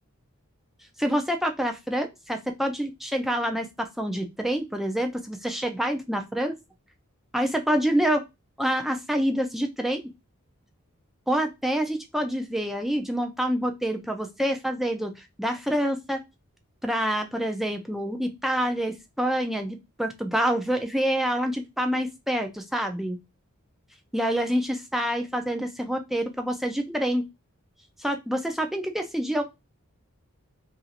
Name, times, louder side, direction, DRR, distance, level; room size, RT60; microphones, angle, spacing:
voice 1, 1.0-6.5 7.3-8.2 8.6-10.0 11.3-16.2 16.8-23.2 24.1-27.2 28.0-29.4, equal, ahead, 4 dB, 0.3 m, -27 dB
2.9 x 2.5 x 2.8 m, 0.23 s
head